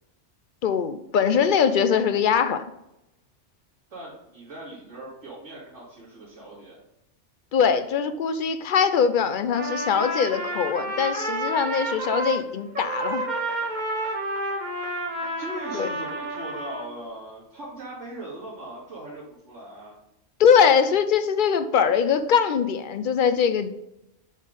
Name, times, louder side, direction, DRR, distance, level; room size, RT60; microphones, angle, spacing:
voice 1, 0.6-2.6 7.5-13.2 15.7-15.9 20.4-23.7, left 7 dB, 60° left, 10 dB, 0.5 m, -22 dB
voice 2, 3.9-6.8 15.4-19.9, right 1 dB, 85° right, -10 dB, 2.8 m, -39 dB
Trumpet, 9.5-12.4 12.7-16.9, right 2 dB, 40° right, 1.2 m, -30 dB
6.4 x 3.7 x 5.1 m, 0.86 s
omnidirectional pair, 1.2 m